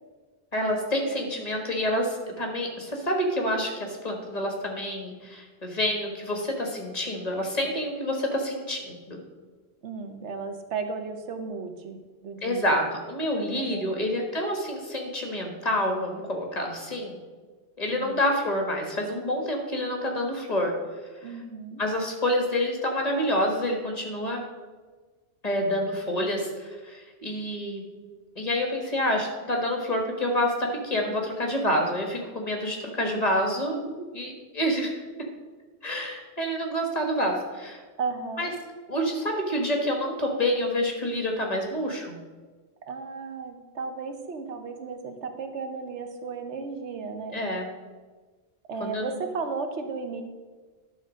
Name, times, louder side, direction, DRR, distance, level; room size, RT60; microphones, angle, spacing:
voice 1, 0.5-9.2 12.4-17.1 17.8-20.7 21.2-21.3 21.8-24.4 25.4-27.8 28.3-33.8 34.1-35.0 35.8-37.8 38.4-38.5 38.9-42.2 47.3-47.6 48.8-49.2, left 1 dB, 35° left, 1 dB, 1.5 m, -28 dB
voice 2, 9.8-12.0 12.2-12.8 13.5-13.9 17.9-18.2 21.2-21.8 33.7-34.1 38.0-38.5 42.9-47.4 48.7-50.2, right 4 dB, 90° right, 6 dB, 1.2 m, -34 dB
11.0 x 3.8 x 6.2 m, 1.4 s
omnidirectional pair, 1.1 m